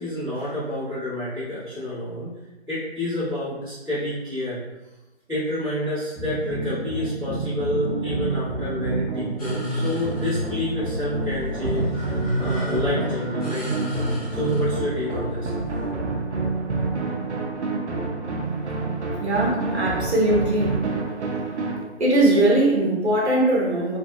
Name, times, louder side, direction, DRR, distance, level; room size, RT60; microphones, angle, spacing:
voice 1, 0.0-2.3 2.7-4.6 5.3-13.7 14.3-15.5, left 1 dB, 5° right, -18 dB, 1.0 m, -29 dB
sound 1, 6.2-21.8, right 3 dB, 90° right, 0.6 m, -28 dB
sound 2, 9.4-17.7, equal, 35° left, 0.8 m, -31 dB
voice 2, 19.2-20.9 22.0-24.0, right 1 dB, 70° right, -4 dB, 1.0 m, -20 dB
2.5 x 2.5 x 2.3 m, 1.1 s
figure-of-eight pair, 150°, 34 cm